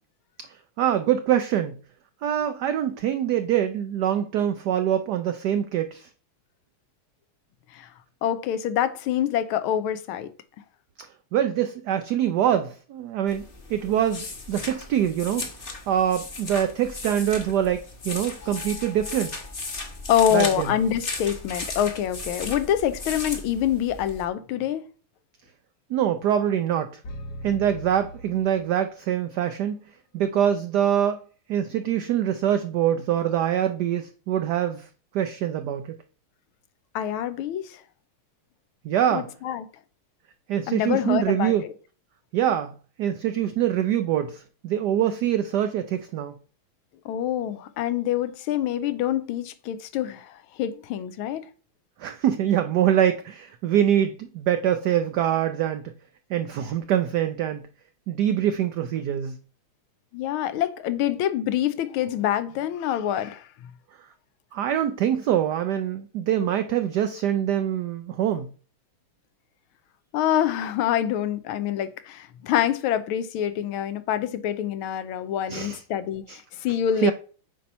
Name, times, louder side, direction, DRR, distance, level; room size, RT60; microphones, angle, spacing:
voice 1, 0.5-1.8 2.2-6.1 11.3-13.4 13.7-15.5 15.9-19.3 20.3-20.7 25.9-27.0 27.4-29.8 30.1-31.2 31.5-34.9 35.1-36.0 38.8-39.3 40.5-41.6 42.3-42.7 43.0-46.3 52.0-55.9 56.3-57.6 58.1-59.4 64.5-68.5 75.5-75.8 76.3-76.4 77.0-77.1, right 10 dB, 85° right, 0.9 m, -24 dB
voice 2, 8.2-10.3 18.4-18.8 20.1-24.8 36.9-37.8 39.1-39.7 40.7-41.5 47.0-51.5 60.1-63.5 70.1-77.1, left 10 dB, 80° left, 1.4 m, -26 dB
sound 1, 13.3-24.2, left 3 dB, 35° left, 1.0 m, -36 dB
sound 2, 27.0-29.2, equal, 60° left, 1.4 m, -39 dB
8.4 x 2.9 x 5.4 m
omnidirectional pair, 2.3 m